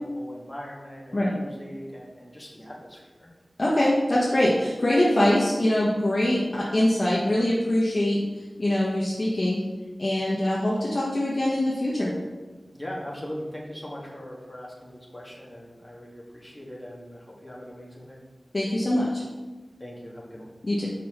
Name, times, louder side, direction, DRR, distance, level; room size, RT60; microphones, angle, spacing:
voice 1, 0.0-3.3 12.7-18.2 19.8-20.5, equal, 5° left, -5 dB, 1.9 m, -40 dB
voice 2, 3.6-8.2 8.6-9.6 10.0-12.1 18.5-19.2 20.6-20.9, left 1 dB, 45° left, -7 dB, 1.4 m, -23 dB
6.0 x 5.7 x 4.5 m, 1.3 s
wide cardioid pair, 45°, 0 cm